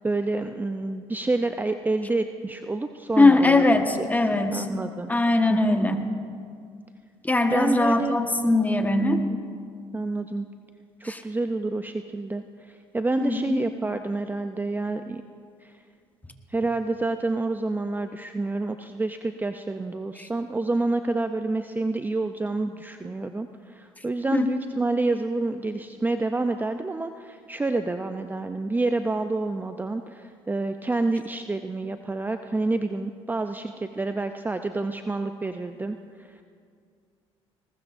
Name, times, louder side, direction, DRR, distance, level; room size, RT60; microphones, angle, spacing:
voice 1, 0.0-3.6 4.0-4.1 4.5-5.1 5.5-5.8 7.4-8.2 9.3-9.4 9.9-10.5 11.0-15.2 15.6-15.7 16.5-36.4, right 2 dB, 15° right, 7 dB, 0.6 m, -28 dB
voice 2, 3.2-4.6 5.1-6.0 7.2-9.2 11.0-11.2 13.2-13.6 20.2-20.3 24.3-24.5, left 2 dB, 15° left, 5 dB, 1.4 m, -21 dB
20.0 x 19.5 x 2.6 m, 2.2 s
supercardioid pair, 65°, 12 cm